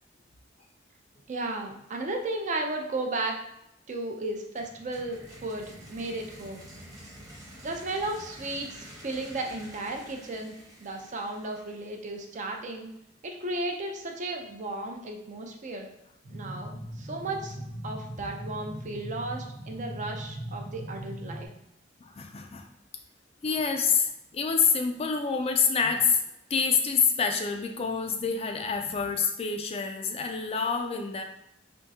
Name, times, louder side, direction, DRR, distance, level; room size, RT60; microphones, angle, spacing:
voice 1, 1.3-3.4 3.9-6.7 7.6-10.5 10.8-12.9 13.2-15.9 16.3-17.6 17.8-21.5, right 2 dB, 40° right, 2 dB, 0.5 m, -34 dB
sound 1, 4.5-12.3, right 1 dB, 20° right, 0.9 m, -49 dB
sound 2, 16.2-21.5, right 1 dB, 75° right, 1.0 m, -39 dB
voice 2, 22.0-22.7 23.4-26.2 26.5-31.2, left 5 dB, 30° left, 5 dB, 0.3 m, -27 dB
3.5 x 3.1 x 2.8 m, 0.82 s
head